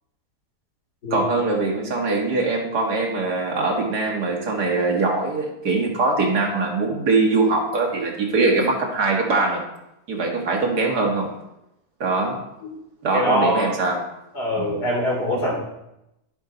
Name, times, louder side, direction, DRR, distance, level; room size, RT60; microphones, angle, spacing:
voice 1, 1.1-9.6 10.1-11.4 12.0-12.4 13.0-14.0 14.6-14.8, right 3 dB, 85° right, 1 dB, 2.3 m, -22 dB
voice 2, 13.1-13.7 14.3-15.6, equal, 85° left, -3 dB, 4.1 m, -23 dB
11.5 x 7.9 x 4.0 m, 0.87 s
omnidirectional pair, 1.7 m